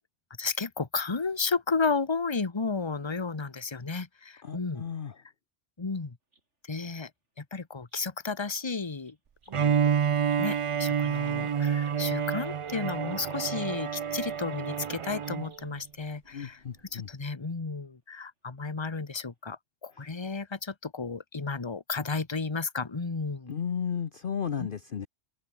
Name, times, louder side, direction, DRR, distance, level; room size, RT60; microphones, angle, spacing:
voice 1, 0.4-4.8 5.8-6.2 6.7-7.1 7.4-9.1 9.5-9.9 10.4-16.6 16.9-23.5 24.6-24.7, left 4 dB, 25° left, 1.2 m, -33 dB
voice 2, 4.4-5.2 16.3-17.1 19.9-20.1 23.5-25.1, left 7 dB, 50° left, 1.0 m, -34 dB
sound 1, 6.3-6.4 6.9-7.1 7.8-8.0 8.6-8.7 9.0-16.3 17.7-17.8 19.1-19.5, right 2 dB, 80° right, 5.1 m, -61 dB
Bowed string instrument, 9.5-15.5, right 7 dB, 60° right, 0.3 m, -28 dB
open air
omnidirectional pair, 1.2 m